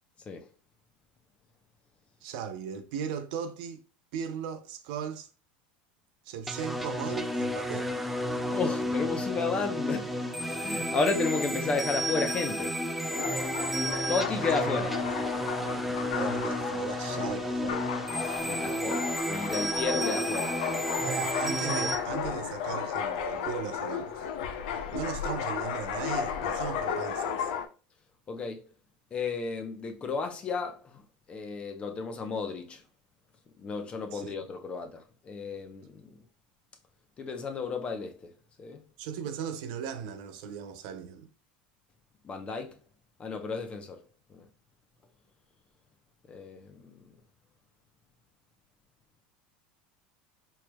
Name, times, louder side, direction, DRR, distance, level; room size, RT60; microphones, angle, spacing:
voice 1, 2.2-3.8 4.1-5.3 6.3-7.9 14.5-14.7 16.2-17.9 21.0-24.3 24.9-27.5 34.1-34.3 39.0-41.3, right 7 dB, 70° right, 0.6 m, -37 dB
sound 1, 6.5-22.0, equal, 5° right, 0.4 m, -32 dB
voice 2, 8.5-12.7 14.1-14.9 15.9-16.0 18.4-20.8 24.8-24.9 28.3-28.6 29.1-31.0 31.3-32.8 33.6-36.2 37.2-38.1 38.6-38.8 42.2-42.8 43.2-44.0 44.3-44.4 46.3-47.0, left 4 dB, 25° left, 0.7 m, -33 dB
sound 2, 13.1-27.6, left 7 dB, 80° left, 0.6 m, -34 dB
4.6 x 3.1 x 2.2 m
supercardioid pair, 135°, 5 cm